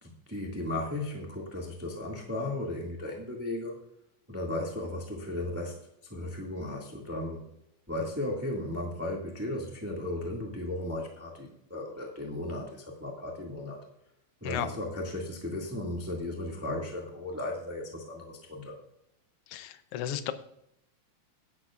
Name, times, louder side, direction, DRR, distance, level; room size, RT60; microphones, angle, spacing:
voice 1, 0.0-3.8 4.3-7.5 7.9-13.8 14.4-18.8, left 1 dB, 5° right, -1 dB, 1.3 m, -35 dB
voice 2, 19.5-20.3, left 11 dB, 75° left, 10 dB, 1.4 m, -34 dB
17.5 x 9.7 x 2.5 m, 0.78 s
omnidirectional pair, 3.5 m